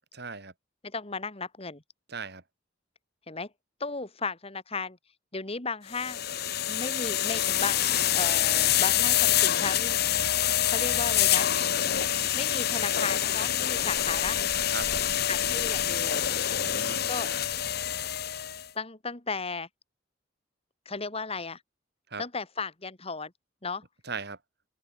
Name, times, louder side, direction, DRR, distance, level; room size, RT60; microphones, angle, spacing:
voice 1, 0.1-0.5 2.1-2.4 14.7-14.9 16.5-17.0 22.1-22.2 24.0-24.4, right 4 dB, 55° right, 4.6 m, -38 dB
voice 2, 0.8-1.8 3.3-3.5 3.8-5.0 5.3-6.2 6.7-10.0 10.6-11.5 12.3-14.4 15.3-16.2 17.1-17.3 18.7-19.7 20.9-21.6 22.2-23.3 23.6-23.8, left 4 dB, 30° left, 2.3 m, -35 dB
sound 1, 5.9-18.6, left 11 dB, 55° left, 1.1 m, -26 dB
open air
head